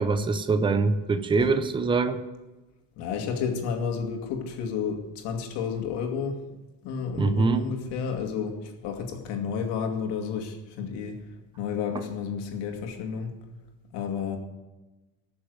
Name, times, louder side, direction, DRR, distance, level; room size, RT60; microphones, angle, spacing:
voice 1, 0.0-2.2 7.2-7.7, right 4 dB, 10° right, 9 dB, 0.6 m, -24 dB
voice 2, 3.0-6.4 6.8-11.2 11.6-13.3 13.9-14.4, left 6 dB, 90° left, 3 dB, 2.5 m, -31 dB
18.5 x 7.0 x 8.0 m, 1.1 s
cardioid pair, 175°, 40 cm